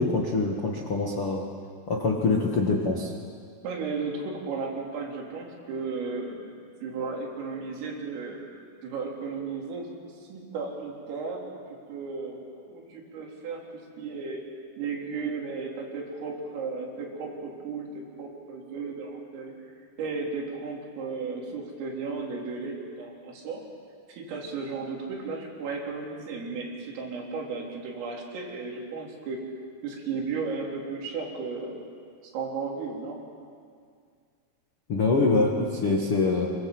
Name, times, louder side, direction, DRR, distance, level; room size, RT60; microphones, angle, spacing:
voice 1, 0.0-1.4 1.9-3.1 34.9-36.5, left 3 dB, 80° left, 0 dB, 1.2 m, -24 dB
voice 2, 3.6-6.5 6.8-14.4 14.8-19.5 20.0-23.6 24.1-29.4 29.8-31.8 32.2-33.2, right 4 dB, 75° right, -1 dB, 6.2 m, -35 dB
26.0 x 24.0 x 8.0 m, 2.2 s
omnidirectional pair, 6.0 m